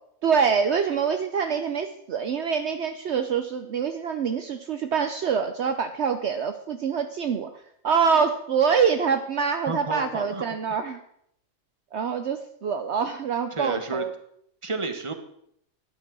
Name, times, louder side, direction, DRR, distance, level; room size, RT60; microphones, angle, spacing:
voice 1, 0.2-11.0 11.9-14.1, right 6 dB, 60° right, 7 dB, 1.0 m, -25 dB
voice 2, 9.7-10.4 13.5-14.0 14.6-15.1, right 3 dB, 25° right, 7 dB, 1.3 m, -31 dB
11.5 x 9.7 x 6.1 m, 0.73 s
omnidirectional pair, 1.4 m